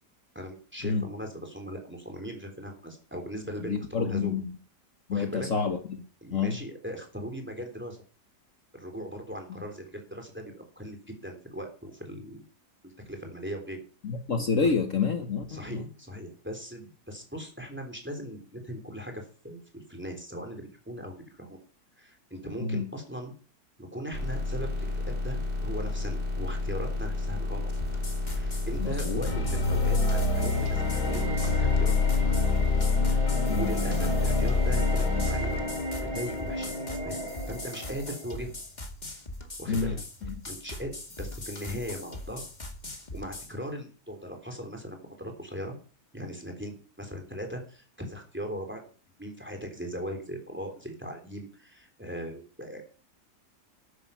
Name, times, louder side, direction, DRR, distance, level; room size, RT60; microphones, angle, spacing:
voice 1, 0.4-4.4 5.1-5.5 6.2-8.0 8.7-12.5 12.8-13.8 14.6-14.7 15.5-21.6 22.0-23.3 23.8-27.7 28.3-32.2 33.1-35.5 36.1-37.2 37.5-38.5 39.6-40.0 40.5-40.9 41.2-42.5 43.1-45.7 46.1-48.8 49.2-52.8, equal, 5° right, 4 dB, 3.5 m, -39 dB
voice 2, 3.7-4.5 5.1-6.0 6.3-6.6 14.0-15.8 22.6-22.8 28.8-29.2 33.5-33.7 39.7-39.9, left 5 dB, 55° left, 6 dB, 1.6 m, -28 dB
sound 1, 24.1-35.6, left 2 dB, 40° right, 4.7 m, -31 dB
sound 2, 27.7-43.5, left 1 dB, 25° left, 2.0 m, -41 dB
sound 3, 29.3-38.3, left 2 dB, 75° left, 3.0 m, -28 dB
12.5 x 10.0 x 5.6 m, 0.38 s
omnidirectional pair, 1.7 m